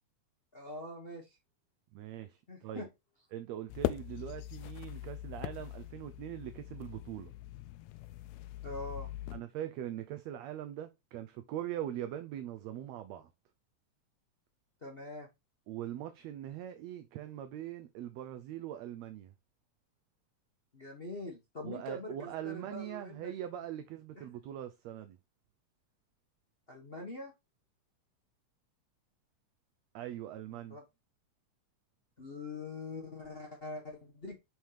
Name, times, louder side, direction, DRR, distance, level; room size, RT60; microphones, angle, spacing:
voice 1, 0.5-1.4 2.5-2.9 8.6-9.1 14.8-15.3 20.7-23.3 24.1-24.2 26.7-27.3 30.5-30.8 32.2-34.4, left 2 dB, 55° left, 0.6 m, -43 dB
voice 2, 1.9-2.9 3.3-7.3 9.3-13.3 15.7-19.3 21.6-25.2 29.9-30.8, right 11 dB, 75° right, 1.8 m, -42 dB
sound 1, 3.7-9.4, left 14 dB, 80° left, 1.8 m, -41 dB
6.5 x 6.3 x 3.3 m
omnidirectional pair, 3.3 m